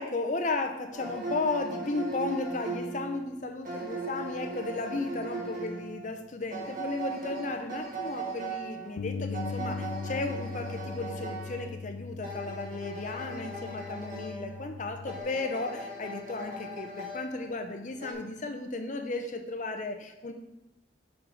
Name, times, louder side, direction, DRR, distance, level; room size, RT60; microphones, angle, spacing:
voice 1, 0.0-20.3, left 3 dB, 40° left, 6 dB, 0.6 m, -34 dB
sound 1, 0.9-18.1, right 2 dB, 45° right, 1.4 m, -39 dB
Bass guitar, 9.0-15.2, left 5 dB, 85° left, 0.4 m, -39 dB
6.0 x 4.7 x 5.1 m, 0.93 s
head